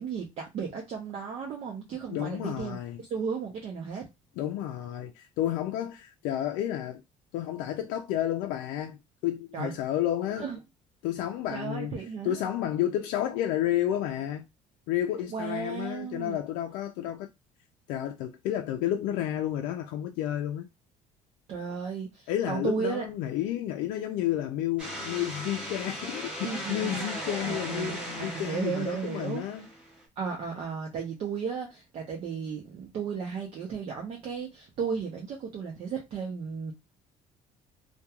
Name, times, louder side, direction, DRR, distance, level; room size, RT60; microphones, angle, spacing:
voice 1, 0.0-4.1 9.5-9.7 10.4-10.6 11.5-12.4 15.3-16.4 21.5-23.1 25.1-25.2 26.4-27.1 27.4-29.4 30.2-36.7, right 6 dB, 45° right, 0.6 m, -34 dB
voice 2, 2.1-3.0 4.4-7.0 7.3-10.5 11.0-11.9 12.2-14.4 14.9-17.3 17.9-20.7 22.3-29.7, left 12 dB, 85° left, 0.4 m, -31 dB
sound 1, 24.8-30.0, equal, 10° right, 0.9 m, -38 dB
2.8 x 2.2 x 2.3 m
cardioid pair, 160°, 14 cm